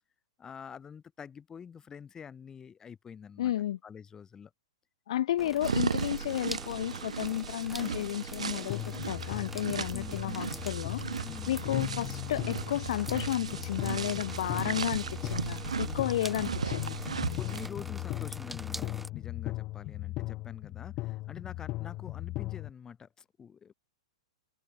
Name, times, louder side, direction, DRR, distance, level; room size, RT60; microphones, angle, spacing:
voice 1, 0.4-3.5 3.8-4.5 9.9-10.5 11.2-11.6 15.8-16.1 17.3-23.7, left 7 dB, 20° left, 4.2 m, -46 dB
voice 2, 3.4-3.8 5.1-8.8 9.1-11.0 11.5-17.0, left 12 dB, 60° left, 0.8 m, -32 dB
sound 1, 5.4-19.1, right 2 dB, 5° right, 4.1 m, -46 dB
sound 2, 5.6-17.7, right 6 dB, 85° right, 0.6 m, -36 dB
sound 3, 8.7-22.7, left 19 dB, 35° left, 2.4 m, -38 dB
hypercardioid pair, 120°, 3 cm